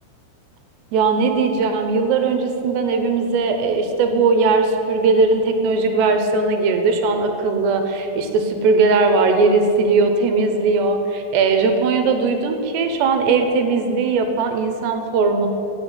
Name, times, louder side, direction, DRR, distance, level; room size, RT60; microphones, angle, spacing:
voice 1, 0.9-15.5, right 4 dB, 75° right, 6 dB, 3.1 m, -19 dB
15.5 x 6.8 x 9.2 m, 2.9 s
omnidirectional pair, 5.1 m